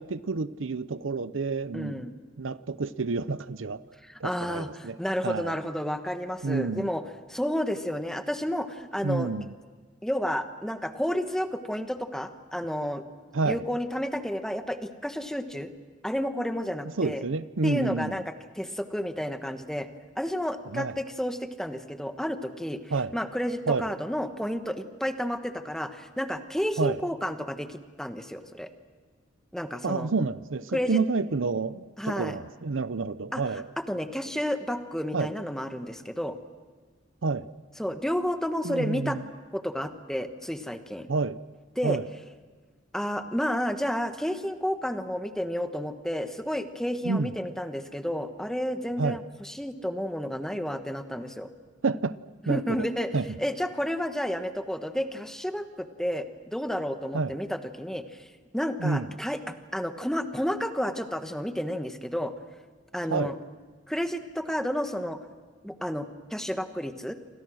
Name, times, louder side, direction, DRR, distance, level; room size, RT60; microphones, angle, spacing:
voice 1, 0.0-2.1 2.4-3.8 4.2-5.0 5.2-5.6 6.4-6.9 9.0-9.5 13.3-13.6 17.0-18.1 20.7-20.9 22.9-23.1 23.7-23.9 26.8-27.0 29.8-33.6 35.1-35.3 37.2-37.5 38.6-39.2 41.1-41.4 41.8-42.1 47.0-47.3 49.0-49.2 51.8-52.2 52.5-52.8 53.1-53.4 57.1-57.4 58.8-59.1 63.1-63.3, right 4 dB, 90° right, 16 dB, 0.7 m, -29 dB
voice 2, 1.7-2.1 4.0-7.0 7.3-9.3 10.0-13.0 13.4-15.7 16.0-17.2 17.6-19.9 20.2-22.8 23.1-28.7 29.5-30.1 30.7-31.0 32.0-32.4 33.3-33.4 33.8-36.4 37.8-39.2 39.5-41.1 41.8-42.0 42.9-51.5 52.4-58.2 58.5-62.3 62.9-63.4 63.9-65.2 65.6-67.1, equal, 5° left, 8 dB, 1.3 m, -31 dB
28.5 x 25.0 x 6.3 m, 1.4 s
head